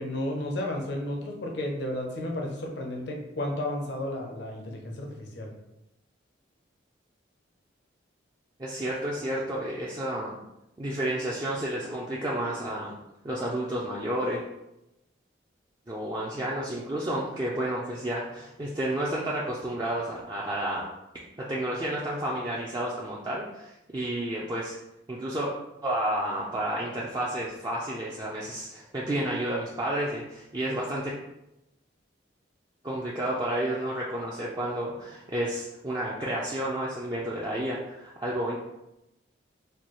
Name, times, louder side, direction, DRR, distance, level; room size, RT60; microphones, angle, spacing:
voice 1, 0.0-5.5, left 1 dB, 65° left, 1 dB, 0.6 m, -33 dB
voice 2, 8.6-10.4 10.8-13.0 13.2-14.4 15.9-20.9 21.4-24.7 25.1-25.5 25.8-31.1 32.8-38.6, right 1 dB, 20° right, -6 dB, 0.4 m, -31 dB
4.3 x 2.3 x 3.0 m, 0.90 s
head